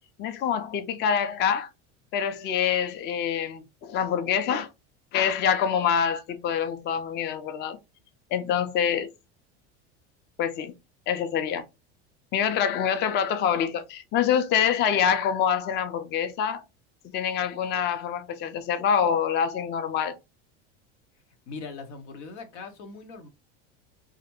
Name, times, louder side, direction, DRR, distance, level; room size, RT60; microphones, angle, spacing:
voice 1, 0.2-1.7 2.1-4.7 5.1-7.8 8.3-9.1 10.4-10.7 11.1-11.6 12.3-16.6 17.1-20.2, left 8 dB, 30° left, 0.4 m, -26 dB
voice 2, 21.5-23.3, left 4 dB, 90° left, 0.7 m, -40 dB
2.4 x 2.0 x 2.9 m
supercardioid pair, 105°, 35 cm